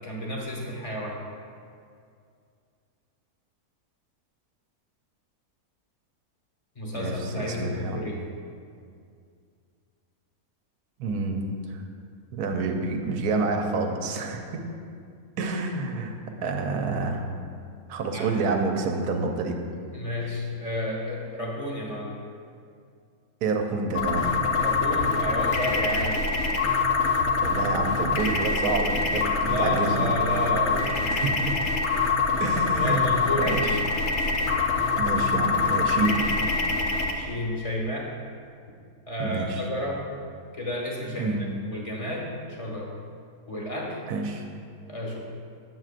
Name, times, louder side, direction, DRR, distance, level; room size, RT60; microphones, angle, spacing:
voice 1, 0.0-1.2 6.7-8.2 18.1-18.3 19.9-22.2 24.6-26.2 29.4-31.0 32.8-33.6 37.1-38.1 39.1-40.0 40.5-41.4 41.7-42.9 43.5-44.0 44.9-45.2, left 1 dB, 25° left, -2 dB, 0.9 m, -31 dB
voice 2, 6.9-8.0 11.0-11.8 12.3-14.6 15.4-16.1 16.4-17.3 17.9-19.6 23.4-24.3 27.4-30.1 31.0-31.6 32.4-33.8 35.0-36.2 39.2-39.7 41.2-41.4 44.1-44.5, right 3 dB, 90° right, 3 dB, 1.2 m, -28 dB
sound 1, 23.9-37.1, left 4 dB, 60° left, 0.8 m, -25 dB
7.7 x 7.4 x 2.5 m, 2.3 s
omnidirectional pair, 1.6 m